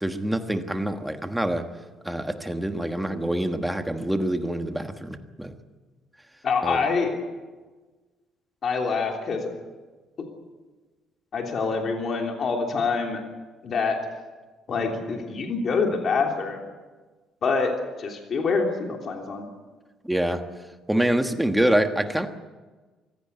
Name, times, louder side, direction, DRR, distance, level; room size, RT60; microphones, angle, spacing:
voice 1, 0.0-1.6 2.0-5.5 6.6-6.8 20.0-20.4 20.9-22.3, right 1 dB, 5° right, 6 dB, 1.3 m, -25 dB
voice 2, 6.4-7.2 8.6-9.4 11.3-13.2 13.6-14.0 14.7-16.6 17.4-17.7 18.0-19.4, left 4 dB, 35° left, 1 dB, 3.2 m, -25 dB
24.0 x 16.5 x 9.5 m, 1.3 s
cardioid pair, 175°, 0 cm